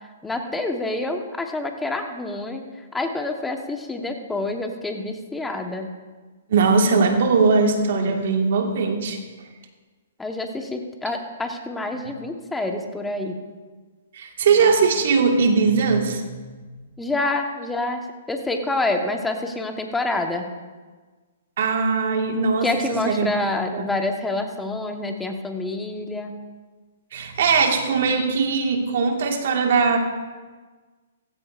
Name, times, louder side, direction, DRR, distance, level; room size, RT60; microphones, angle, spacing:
voice 1, 0.2-2.6 2.9-5.9 7.9-8.2 10.2-13.4 17.0-18.0 18.3-20.4 22.6-26.3, left 2 dB, 10° left, 4 dB, 1.2 m, -27 dB
voice 2, 6.5-9.2 14.1-16.6 21.6-23.3 23.7-23.9 27.1-30.0, right 4 dB, 65° right, 4 dB, 1.8 m, -20 dB
15.5 x 15.5 x 2.6 m, 1.4 s
hypercardioid pair, 135°, 0 cm